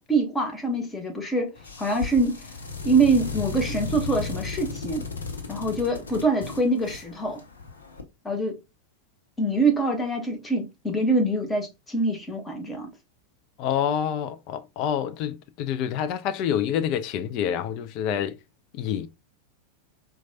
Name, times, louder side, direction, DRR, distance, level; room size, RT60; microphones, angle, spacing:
voice 1, 0.1-1.5 1.8-2.4 2.8-5.1 5.5-7.4 8.2-8.6 9.4-12.9, right 2 dB, 10° left, 0.9 m, -24 dB
sound 1, 1.6-8.0, left 4 dB, 70° left, 0.8 m, -35 dB
voice 2, 13.6-18.4 18.7-19.1, left 9 dB, 40° left, 0.4 m, -27 dB
4.4 x 2.3 x 2.6 m
figure-of-eight pair, 90°, 0 cm